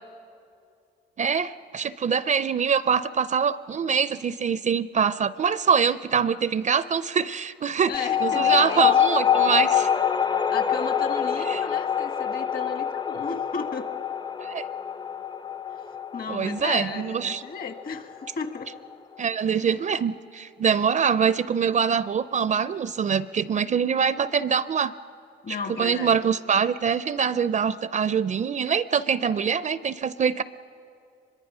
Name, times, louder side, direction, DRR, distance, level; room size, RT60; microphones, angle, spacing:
voice 1, 1.2-9.9 11.5-11.6 14.4-14.6 16.3-17.4 19.2-24.9 25.8-30.4, right 6 dB, 40° right, 16 dB, 0.4 m, -24 dB
voice 2, 7.9-8.9 10.5-13.9 16.1-18.7 25.4-26.2, left 5 dB, 50° left, 8 dB, 1.4 m, -34 dB
sound 1, 7.9-18.9, left 8 dB, 20° left, 0.4 m, -25 dB
24.0 x 22.0 x 5.5 m, 2.5 s
cardioid pair, 90°, 20 cm